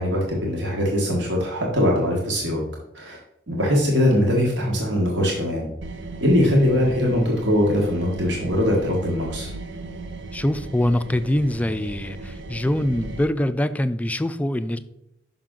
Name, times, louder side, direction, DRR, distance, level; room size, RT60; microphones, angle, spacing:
voice 1, 0.0-2.6 2.9-3.2 3.5-5.7 6.2-9.5, left 1 dB, 75° right, -2 dB, 1.5 m, -21 dB
sound 1, 5.8-13.2, right 2 dB, 90° right, 0.7 m, -37 dB
voice 2, 10.3-14.8, left 1 dB, 10° left, 11 dB, 0.3 m, -24 dB
5.9 x 5.8 x 3.8 m, 0.82 s
head